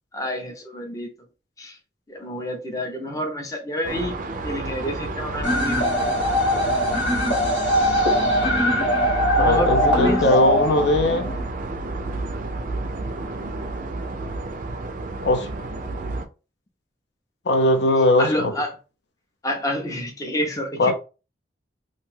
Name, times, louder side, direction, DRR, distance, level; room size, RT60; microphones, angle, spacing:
voice 1, 0.1-1.1 1.6-1.8 2.1-4.2 4.4-5.8 9.4-10.2 18.2-18.7 19.4-20.9, equal, 20° left, 0.5 m, -28 dB
sound 1, 3.8-16.3, right 2 dB, 45° right, 0.4 m, -30 dB
sound 2, 5.4-11.4, equal, 85° left, 1.5 m, -21 dB
voice 2, 9.4-11.3 15.2-15.5 17.5-18.5 20.8-20.9, left 1 dB, 65° left, 0.6 m, -19 dB
2.6 x 2.2 x 3.2 m
head